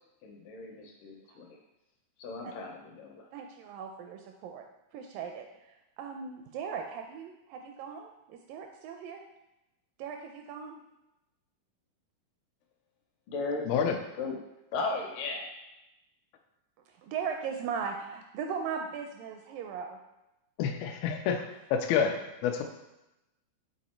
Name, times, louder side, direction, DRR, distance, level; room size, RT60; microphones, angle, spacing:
voice 1, 0.2-1.6 2.2-3.3 13.3-13.7 14.2-14.4 14.7-15.5, left 3 dB, 70° left, 1 dB, 2.4 m, -36 dB
voice 2, 3.3-4.7 4.9-9.2 10.0-10.8 17.0-20.0, right 6 dB, 80° right, 4 dB, 2.0 m, -38 dB
voice 3, 13.7-14.0 20.6-21.4 21.7-22.1 22.4-22.6, left 7 dB, 90° left, 4 dB, 2.5 m, -27 dB
7.5 x 4.1 x 4.3 m, 0.93 s
omnidirectional pair, 4.3 m